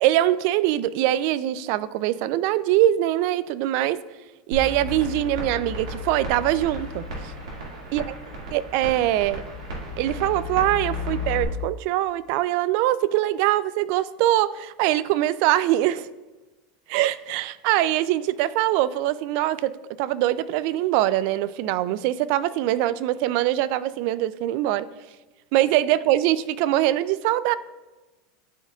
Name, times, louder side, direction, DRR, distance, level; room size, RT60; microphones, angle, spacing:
voice 1, 0.0-4.0 4.5-7.3 7.9-8.0 8.5-9.4 10.0-16.1 16.9-24.9 25.5-27.5, right 14 dB, 60° right, 17 dB, 0.3 m, -23 dB
sound 1, 4.5-11.4, left 2 dB, 90° right, 2.1 m, -33 dB
12.5 x 4.4 x 2.4 m, 1.1 s
supercardioid pair, 115°, 4 cm